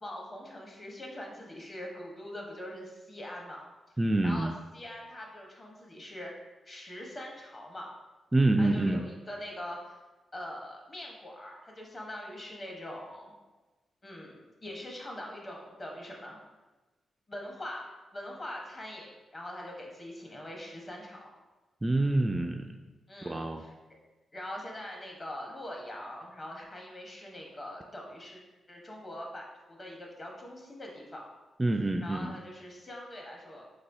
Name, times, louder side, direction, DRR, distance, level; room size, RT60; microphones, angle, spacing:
voice 1, 0.0-3.6 4.2-6.3 6.6-7.9 8.6-10.0 10.3-13.3 14.0-16.4 17.3-21.2 23.1-23.7 24.3-28.4 28.7-31.3 32.0-33.6, left 1 dB, 35° left, -1 dB, 1.1 m, -43 dB
voice 2, 4.0-4.5 8.3-9.0 21.8-22.7 23.3-23.7 31.6-32.4, right 2 dB, 20° right, 4 dB, 0.3 m, -26 dB
4.2 x 4.0 x 2.7 m, 1.2 s
cardioid pair, 70°, 0 cm